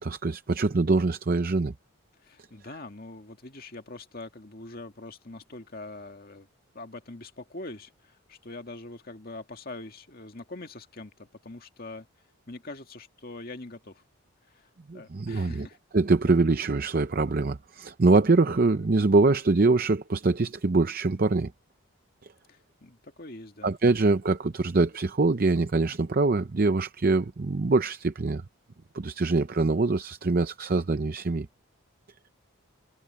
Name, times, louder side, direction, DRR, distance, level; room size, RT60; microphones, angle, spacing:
voice 1, 0.0-1.7 14.9-15.7 15.9-21.5 23.6-28.4 28.9-31.5, right 3 dB, 40° right, 0.6 m, -24 dB
voice 2, 2.2-6.5 6.7-12.1 12.5-14.0 14.5-15.8 22.5-23.7, left 2 dB, 40° left, 2.1 m, -43 dB
head